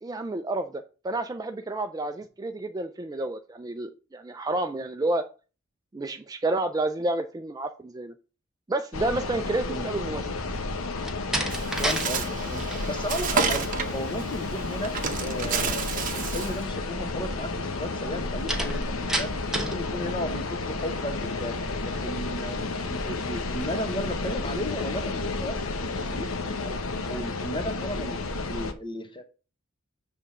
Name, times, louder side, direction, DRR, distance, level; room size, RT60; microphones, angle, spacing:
voice 1, 0.0-5.2 5.9-8.1 8.7-10.2, right 2 dB, 20° right, 8 dB, 0.3 m, -30 dB
sound 1, 8.9-28.7, left 3 dB, 85° left, 0.9 m, -31 dB
Slam, 11.0-12.1 12.4-12.9 18.5-19.8, right 1 dB, ahead, 0.9 m, -29 dB
Bird, 11.5-16.6, right 5 dB, 40° right, 0.8 m, -31 dB
voice 2, 11.8-26.8 27.1-29.2, equal, 25° left, 7 dB, 1.0 m, -35 dB
7.0 x 3.6 x 5.5 m, 0.34 s
head